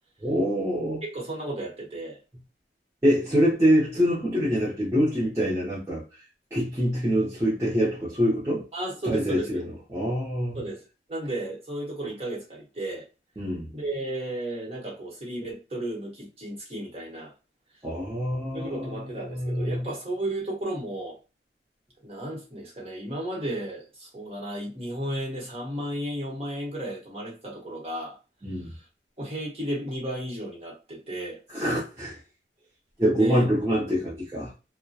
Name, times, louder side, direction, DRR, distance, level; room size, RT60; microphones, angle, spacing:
voice 1, 0.2-1.0 3.0-6.2 6.5-8.7 9.0-10.6 13.4-13.7 17.8-19.9 28.4-28.7 31.5-32.2 33.0-34.5, equal, 15° right, 0.6 m, -25 dB
voice 2, 1.0-2.2 8.7-9.6 10.5-10.8 11.1-13.1 13.7-17.3 18.5-21.2 22.0-28.2 29.2-31.4 33.1-33.5, right 1 dB, 35° right, 0.9 m, -33 dB
2.7 x 2.1 x 2.2 m
head